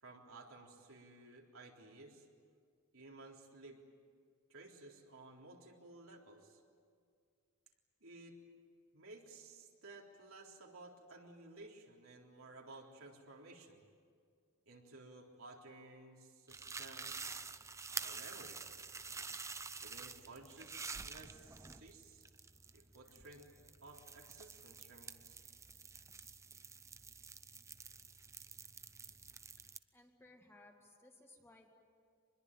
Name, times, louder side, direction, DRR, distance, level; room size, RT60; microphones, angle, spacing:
voice 1, 0.0-2.3 2.9-3.8 4.5-6.6 8.0-8.4 8.9-13.8 14.7-17.3 18.0-18.6 19.8-22.3 22.7-23.5 23.8-25.4, right 2 dB, 70° right, 0 dB, 3.7 m, -56 dB
sound 1, 16.5-29.8, right 4 dB, 15° right, 0.6 m, -48 dB
voice 2, 29.9-31.7, left 2 dB, 10° left, 2 dB, 2.3 m, -61 dB
26.0 x 21.5 x 9.2 m, 2.1 s
head